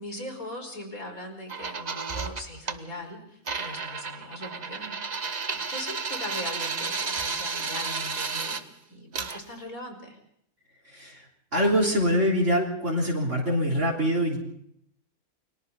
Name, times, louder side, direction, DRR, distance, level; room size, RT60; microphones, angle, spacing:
voice 1, 0.0-5.0 5.5-8.6 8.9-10.2, left 1 dB, 70° left, 4 dB, 5.4 m, -40 dB
sound 1, 1.5-2.8 3.5-8.6 9.1-9.4, right 4 dB, 30° right, 1.0 m, -32 dB
voice 2, 11.5-14.4, equal, 55° right, -2 dB, 4.0 m, -24 dB
29.5 x 23.0 x 4.1 m, 0.70 s
omnidirectional pair, 1.5 m